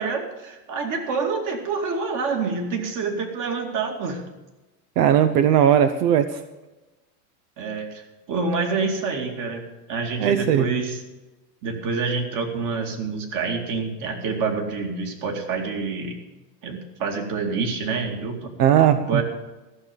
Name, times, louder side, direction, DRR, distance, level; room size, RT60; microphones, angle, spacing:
voice 1, 0.0-4.2 7.6-8.0 8.3-9.6 9.9-11.0 11.6-16.2 16.6-18.5 19.1-19.2, right 4 dB, 40° right, 4 dB, 2.5 m, -27 dB
voice 2, 5.0-6.3 10.2-10.6 18.6-19.2, right 9 dB, 85° right, 11 dB, 0.9 m, -18 dB
14.0 x 6.7 x 8.9 m, 1.1 s
supercardioid pair, 130°, 46 cm